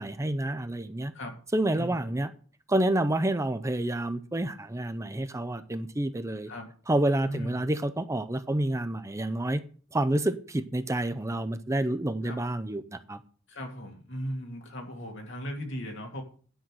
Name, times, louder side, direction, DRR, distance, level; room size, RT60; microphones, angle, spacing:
voice 1, 0.0-1.1 1.5-2.3 2.7-6.5 6.9-9.6 9.9-13.2, right 1 dB, 15° right, 0.6 m, -28 dB
voice 2, 7.2-7.6 12.2-12.4 13.5-16.2, equal, 65° left, 2.8 m, -37 dB
10.5 x 5.7 x 7.6 m
head